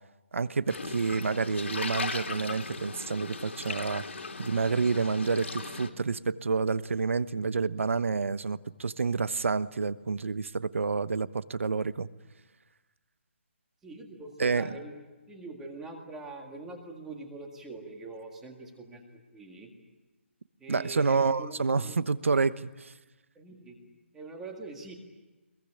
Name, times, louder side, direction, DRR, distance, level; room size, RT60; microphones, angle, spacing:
voice 1, 0.3-4.0 4.4-12.1 14.4-14.7 20.7-22.9, right 4 dB, 75° right, 15 dB, 1.0 m, -28 dB
sound 1, 0.7-5.9, left 4 dB, 70° left, 3.2 m, -38 dB
voice 2, 13.8-14.9 15.3-19.7 20.6-22.0 23.4-23.8 24.1-24.9, right 3 dB, 5° right, 2 dB, 1.9 m, -43 dB
24.0 x 22.0 x 10.0 m, 1.1 s
hypercardioid pair, 180°, 7 cm